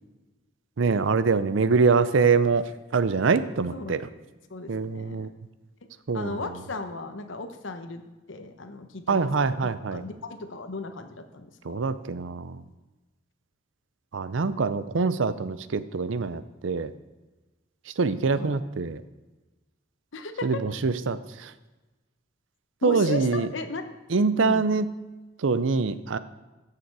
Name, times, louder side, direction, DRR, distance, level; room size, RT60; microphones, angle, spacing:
voice 1, 0.8-4.0 4.7-5.3 6.1-6.4 9.1-10.0 11.6-12.6 14.1-16.9 18.0-19.0 20.4-21.5 22.8-23.5 24.1-24.9 25.4-26.2, right 4 dB, 75° right, 14 dB, 0.6 m, -24 dB
voice 2, 3.7-4.1 4.5-5.3 6.1-11.8 18.3-18.6 20.1-20.6 22.8-23.9 24.4-24.7, left 3 dB, 75° left, 7 dB, 1.0 m, -36 dB
14.0 x 6.7 x 4.7 m, 1.2 s
head